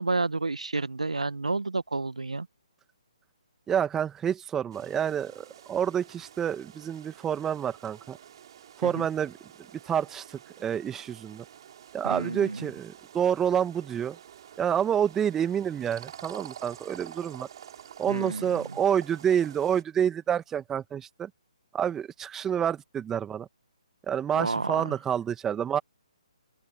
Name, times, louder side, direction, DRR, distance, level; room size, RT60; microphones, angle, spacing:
voice 1, 0.0-2.5 8.8-9.1 12.0-12.6 18.1-18.5 24.4-24.8, right 3 dB, 80° right, 1.4 m, -30 dB
voice 2, 3.7-8.2 8.8-9.3 9.8-11.4 11.9-14.2 14.6-17.5 18.0-21.3 21.7-23.5 24.1-25.8, right 8 dB, 10° right, 1.4 m, -28 dB
sound 1, 4.7-19.8, right 9 dB, 45° right, 4.4 m, -49 dB
open air
figure-of-eight pair, 140°, 4 cm